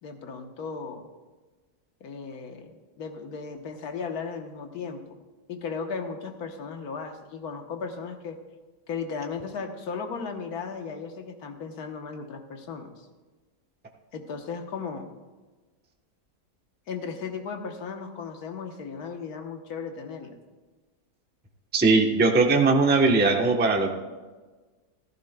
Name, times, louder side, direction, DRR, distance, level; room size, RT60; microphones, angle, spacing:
voice 1, 0.0-1.1 2.0-5.2 5.5-8.4 8.9-13.1 14.1-15.1 16.9-20.4, left 5 dB, 75° left, 5 dB, 1.5 m, -36 dB
voice 2, 21.7-23.9, right 3 dB, 10° right, 1 dB, 0.7 m, -20 dB
15.0 x 13.5 x 2.2 m, 1.3 s
omnidirectional pair, 1.6 m